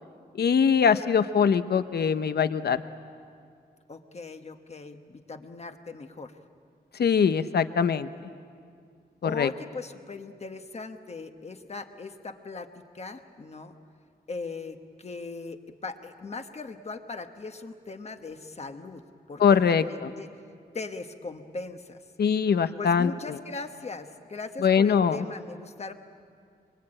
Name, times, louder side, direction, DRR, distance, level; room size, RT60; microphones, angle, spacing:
voice 1, 0.3-2.8 7.0-8.1 9.2-9.5 19.4-20.1 22.2-23.4 24.6-25.2, left 6 dB, 75° left, 12 dB, 0.7 m, -22 dB
voice 2, 3.9-6.3 9.2-13.7 14.3-19.0 19.3-20.3 20.7-22.0 22.8-25.9, left 3 dB, 40° left, 6 dB, 1.2 m, -39 dB
25.5 x 24.0 x 8.9 m, 2.3 s
wide cardioid pair, 180°, 17 cm